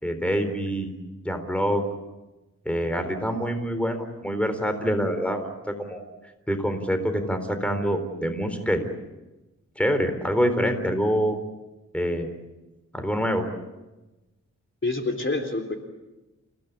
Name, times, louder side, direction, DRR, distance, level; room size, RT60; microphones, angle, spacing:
voice 1, 0.0-0.9 1.2-1.8 2.7-6.0 6.5-8.8 9.8-11.4 11.9-12.3 12.9-13.5, equal, 5° left, 7 dB, 4.0 m, -25 dB
voice 2, 14.8-15.7, left 2 dB, 40° left, 4 dB, 3.7 m, -27 dB
30.0 x 18.0 x 8.6 m, 1.1 s
wide cardioid pair, 80°, 32 cm